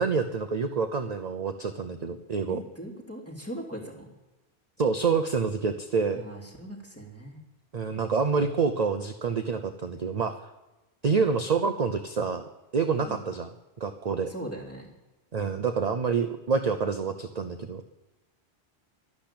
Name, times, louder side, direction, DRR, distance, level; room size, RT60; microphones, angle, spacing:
voice 1, 0.0-2.6 4.8-6.2 7.7-10.3 11.0-12.4 12.7-13.5 13.8-14.3 15.3-17.8, right 5 dB, 40° right, 8 dB, 0.7 m, -27 dB
voice 2, 2.5-4.1 6.1-7.4 12.9-13.2 14.3-14.9, right 1 dB, 10° left, -1 dB, 3.0 m, -40 dB
12.0 x 11.5 x 8.7 m, 1.1 s
omnidirectional pair, 1.2 m